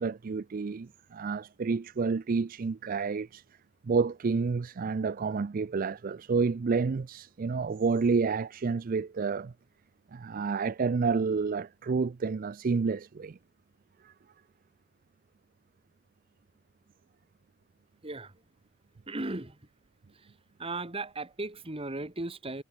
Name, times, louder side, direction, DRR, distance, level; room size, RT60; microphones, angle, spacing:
voice 1, 0.0-3.4 3.8-9.5 10.1-13.4 14.0-14.1, right 4 dB, 40° right, 0.4 m, -29 dB
voice 2, 18.0-18.4 19.1-19.6 20.1-20.3 20.6-22.6, right 2 dB, 25° right, 1.6 m, -37 dB
head